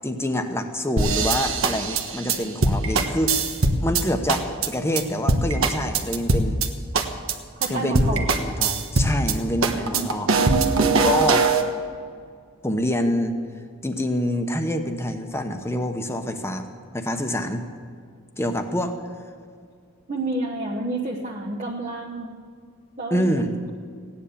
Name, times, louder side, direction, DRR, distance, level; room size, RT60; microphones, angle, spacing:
voice 1, 0.0-3.4 3.8-6.6 7.7-10.3 11.0-11.4 12.6-13.4 13.8-16.7 16.9-17.6 18.4-19.0 23.1-23.5, left 1 dB, 10° left, 6 dB, 1.0 m, -26 dB
sound 1, 1.0-4.0 4.3-4.7 5.0-5.1 5.3-6.7 6.9-7.3 7.6-7.7 7.9-9.3 9.6-11.6, right 3 dB, 70° right, 1.2 m, -21 dB
voice 2, 7.6-8.3 9.9-11.1 20.1-22.3 23.0-23.3, right 3 dB, 35° right, -2 dB, 1.1 m, -29 dB
16.5 x 10.0 x 6.9 m, 2.2 s
head